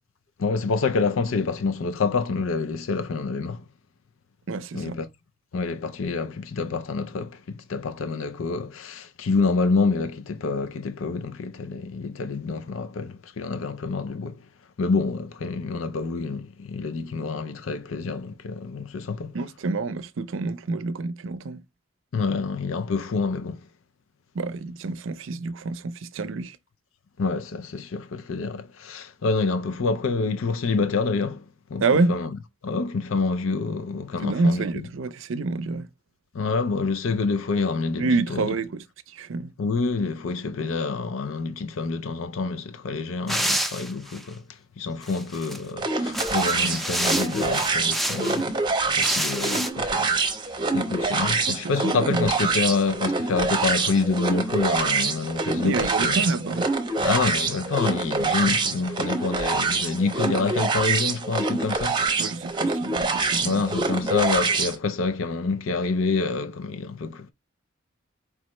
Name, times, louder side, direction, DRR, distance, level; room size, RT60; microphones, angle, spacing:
voice 1, 0.4-3.7 4.7-5.1 5.5-14.4 14.8-19.4 22.1-23.7 27.2-31.4 31.7-31.8 32.1-32.3 32.6-34.6 36.3-38.5 39.6-50.1 50.7-56.3 57.0-62.0 63.4-67.3, left 4 dB, 75° left, 0.5 m, -27 dB
voice 2, 4.5-5.0 19.3-21.6 24.3-26.6 31.8-32.2 34.2-35.9 38.0-39.5 51.5-52.3 55.6-56.7 62.2-63.6, right 3 dB, 70° right, 0.5 m, -27 dB
sound 1, 43.3-44.2 45.0-45.6 46.0-48.4 48.9-49.7, equal, ahead, 0.4 m, -28 dB
sound 2, 45.8-64.8, right 3 dB, 20° right, 0.7 m, -25 dB
4.7 x 3.2 x 2.9 m
head